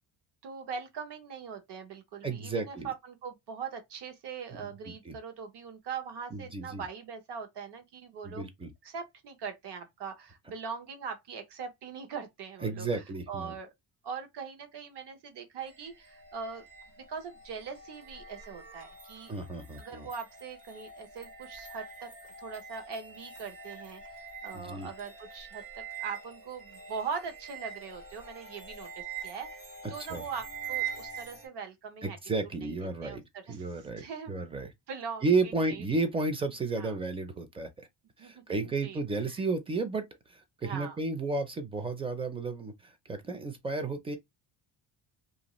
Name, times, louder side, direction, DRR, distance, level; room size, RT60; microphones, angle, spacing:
voice 1, 0.4-8.5 8.8-13.7 14.0-16.6 17.1-19.3 19.8-22.1 22.4-29.5 29.9-32.2 32.6-32.7 33.0-33.2 33.5-34.4 34.9-35.8 36.8-37.0 38.2-38.4 38.8-39.0 40.6-41.0, right 6 dB, 60° right, 0.9 m, -41 dB
voice 2, 2.2-2.9 4.6-5.2 6.3-6.8 8.2-8.7 12.6-13.5 19.3-20.1 24.5-24.9 30.1-30.2 32.0-33.2 33.5-34.7 35.2-37.9 38.2-40.0 40.3-44.2, right 3 dB, 15° right, 0.4 m, -33 dB
sound 1, 15.6-31.5, right 7 dB, 80° right, 1.5 m, -44 dB
2.6 x 2.4 x 2.9 m
cardioid pair, 150°, 46 cm